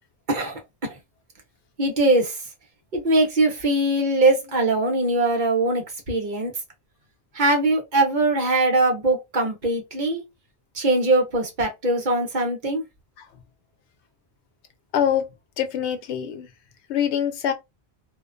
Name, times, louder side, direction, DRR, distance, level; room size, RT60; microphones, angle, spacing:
voice 1, 0.3-1.0 1.8-2.4 2.9-6.5 7.3-10.2 10.7-12.8, right 2 dB, 50° right, 0.9 m, -21 dB
voice 2, 14.9-15.3 15.6-16.5 16.9-17.5, left 9 dB, 90° left, 0.9 m, -24 dB
2.4 x 2.1 x 2.4 m
omnidirectional pair, 1.1 m